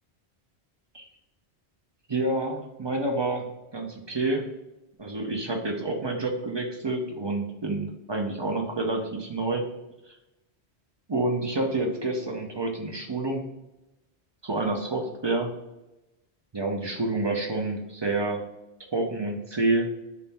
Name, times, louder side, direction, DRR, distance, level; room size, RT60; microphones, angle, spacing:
voice 1, 2.1-3.5 3.7-4.5 5.0-9.6 10.1-10.2 11.1-13.5 14.4-15.5 16.5-18.4 18.9-19.9, right 2 dB, 35° right, 1 dB, 0.4 m, -28 dB
3.5 x 2.6 x 4.1 m, 0.96 s
omnidirectional pair, 1.1 m